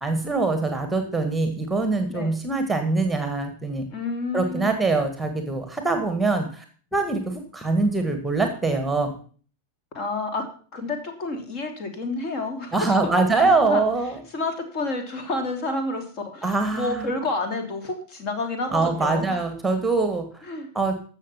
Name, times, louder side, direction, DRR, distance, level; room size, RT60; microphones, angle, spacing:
voice 1, 0.0-3.8 4.3-6.6 6.9-9.2 12.7-14.2 16.4-17.1 18.7-20.5 20.7-20.9, right 3 dB, 5° right, 7 dB, 1.8 m, -23 dB
voice 2, 3.9-4.9 9.9-13.9 14.3-19.4 20.4-20.7, left 2 dB, 40° left, 5 dB, 2.9 m, -30 dB
15.0 x 6.6 x 5.7 m, 0.42 s
figure-of-eight pair, 90°, 0 cm